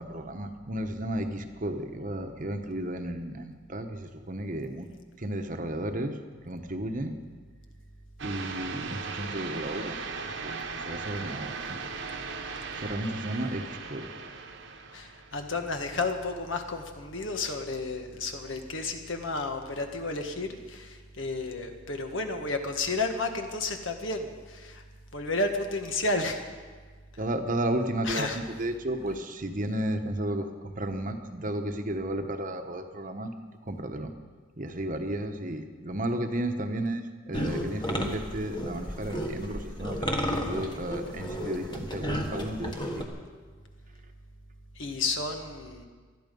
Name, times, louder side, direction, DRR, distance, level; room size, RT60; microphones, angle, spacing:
voice 1, 0.0-4.9 5.2-6.2 6.4-7.2 8.2-11.8 12.7-14.2 27.2-33.4 33.6-34.1 34.6-43.1, right 1 dB, 40° right, 6 dB, 1.1 m, -33 dB
sound 1, 8.2-15.4, right 4 dB, 65° right, 1.2 m, -38 dB
voice 2, 14.9-24.8 25.1-26.4 28.0-28.4 44.7-45.8, left 3 dB, 70° left, 5 dB, 1.6 m, -32 dB
sound 2, 37.3-43.1, equal, 20° left, 1.5 m, -33 dB
20.0 x 13.0 x 5.4 m, 1.5 s
head